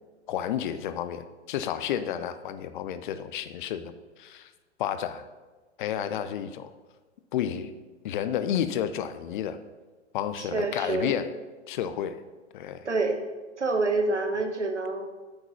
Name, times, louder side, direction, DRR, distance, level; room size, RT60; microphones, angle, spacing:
voice 1, 0.3-3.9 4.2-4.5 4.8-5.2 5.8-6.7 7.3-7.7 8.0-9.6 10.1-11.3 11.7-12.2 12.5-12.9, left 9 dB, 45° left, 12 dB, 0.7 m, -31 dB
voice 2, 10.4-11.1 12.8-13.2 13.6-15.1, right 3 dB, 85° right, 5 dB, 1.2 m, -27 dB
8.9 x 6.1 x 5.4 m, 1.3 s
figure-of-eight pair, 100°, 34 cm